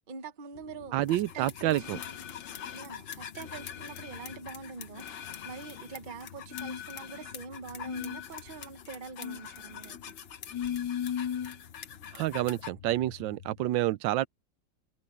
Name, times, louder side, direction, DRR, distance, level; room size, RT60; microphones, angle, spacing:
voice 1, 0.1-1.9 2.7-10.1, right 5 dB, 40° right, 0.7 m, -44 dB
sound 1, 0.5-13.7, left 8 dB, 70° left, 0.5 m, -52 dB
voice 2, 0.9-2.0 12.1-14.3, right 15 dB, 85° right, 1.3 m, -28 dB
sound 2, 1.1-12.7, left 8 dB, 90° left, 2.0 m, -39 dB
omnidirectional pair, 2.0 m